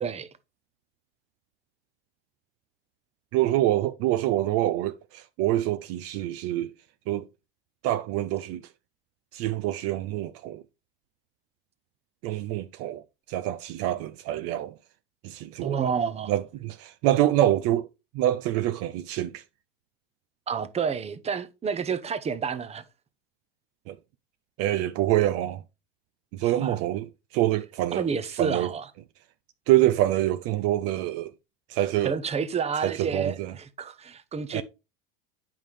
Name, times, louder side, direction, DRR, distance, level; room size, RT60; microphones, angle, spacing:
voice 1, 3.3-6.7 7.1-7.3 7.8-8.7 9.3-10.6 12.2-14.7 15.2-15.8 16.3-17.9 18.1-19.4 23.9-24.0 24.6-25.6 26.3-28.1 28.4-28.7 29.7-31.3 31.7-32.1 32.8-33.5 34.5-34.6, right 14 dB, 55° right, 0.5 m, -26 dB
voice 2, 15.6-16.3 20.5-22.8 26.4-26.8 27.9-28.9 32.0-34.6, right 6 dB, 20° right, 0.8 m, -29 dB
8.8 x 5.6 x 3.2 m
hypercardioid pair, 95°, 29 cm